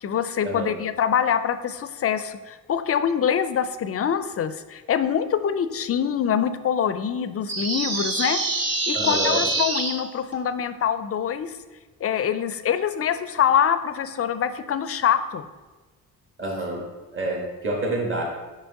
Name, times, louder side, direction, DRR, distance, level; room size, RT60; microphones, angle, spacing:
voice 1, 0.0-8.4 8.9-11.6 12.0-15.4, left 8 dB, 40° left, 12 dB, 0.4 m, -24 dB
sound 1, 7.5-9.9, right 3 dB, 65° right, 1.4 m, -25 dB
voice 2, 8.9-9.4 16.4-16.8 17.1-18.2, right 2 dB, 35° right, -1 dB, 1.5 m, -27 dB
5.3 x 5.2 x 3.7 m, 1.2 s
cardioid pair, 90°, 36 cm